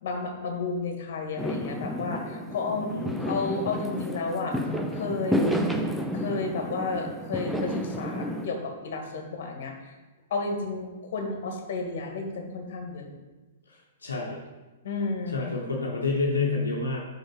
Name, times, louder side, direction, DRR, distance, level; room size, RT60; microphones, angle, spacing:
voice 1, 0.0-2.9 3.2-4.6 4.9-5.6 6.1-9.9 10.3-13.1 14.8-15.4, left 3 dB, 60° left, 3 dB, 1.6 m, -32 dB
Fireworks, 1.4-8.5, equal, ahead, 0.7 m, -31 dB
voice 2, 2.8-3.3 13.7-14.4 15.3-17.0, left 3 dB, 85° left, -3 dB, 1.1 m, -29 dB
5.2 x 5.0 x 6.1 m, 1.2 s
hypercardioid pair, 115°, 0 cm